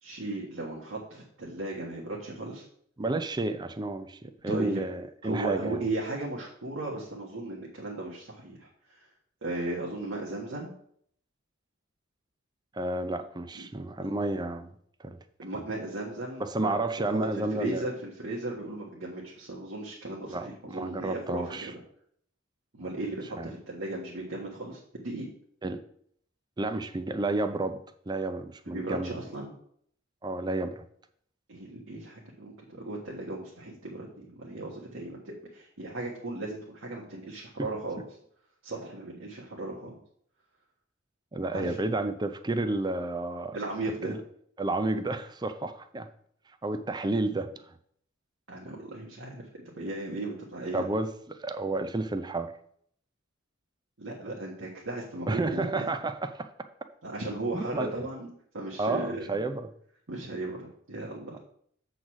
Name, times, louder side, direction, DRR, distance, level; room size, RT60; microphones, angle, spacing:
voice 1, 0.0-2.6 4.5-4.8 5.2-9.0 9.4-10.7 13.5-13.6 14.0-14.1 15.4-16.8 17.1-17.2 17.5-21.8 22.7-25.3 28.7-29.5 31.5-38.0 38.6-40.0 41.5-41.7 43.5-44.2 48.5-50.9 54.0-55.8 57.0-59.3 60.1-61.4, right 2 dB, 80° right, -4 dB, 1.5 m, -36 dB
voice 2, 3.0-5.8 12.7-14.7 15.0-15.2 16.4-17.8 20.3-21.7 22.8-22.9 23.4-23.5 25.6-25.8 26.6-27.8 28.1-29.2 30.2-30.8 41.3-43.6 44.0-44.2 44.6-46.1 46.6-47.7 50.7-52.5 55.3-56.5 57.5-57.9 58.8-59.7, right 2 dB, 20° right, 9 dB, 0.5 m, -31 dB
7.4 x 3.9 x 6.3 m, 0.64 s
head